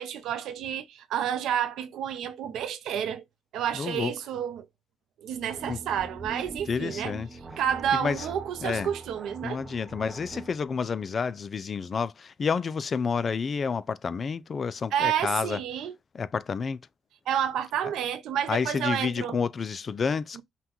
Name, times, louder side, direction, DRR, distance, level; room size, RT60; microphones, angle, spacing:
voice 1, 0.0-3.2 3.5-4.7 5.2-7.1 7.6-9.6 14.9-15.9 17.3-19.4 20.4-20.5, right 9 dB, 80° right, 0.7 m, -30 dB
voice 2, 3.7-4.1 5.7-5.8 6.7-7.3 7.9-8.3 8.6-8.9 9.4-15.6 16.1-16.8 18.5-20.4, left 5 dB, 45° left, 0.4 m, -29 dB
sound 1, 5.4-10.6, right 3 dB, 30° right, 0.7 m, -42 dB
5.7 x 2.3 x 3.0 m
cardioid pair, 90°, 0 cm